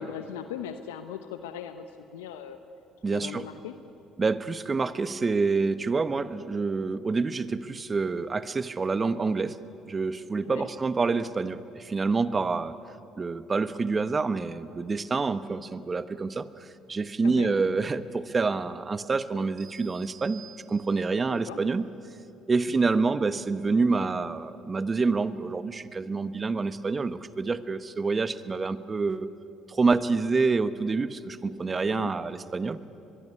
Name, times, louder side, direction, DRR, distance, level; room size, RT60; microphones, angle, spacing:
voice 1, 0.0-1.8 2.1-2.6 3.1-3.7 10.4-10.7 17.2-17.5 21.3-21.6 31.8-32.1, left 9 dB, 90° left, 8 dB, 0.9 m, -39 dB
voice 2, 3.0-3.4 4.2-9.6 9.9-12.7 13.1-16.5 16.9-20.4 20.7-21.8 22.5-29.3 29.7-32.8, right 4 dB, 30° right, 13 dB, 1.2 m, -27 dB
sound 1, 19.6-21.3, right 8 dB, 55° right, 6.6 m, -51 dB
23.0 x 21.5 x 9.8 m, 2.9 s
hypercardioid pair, 60°, 0 cm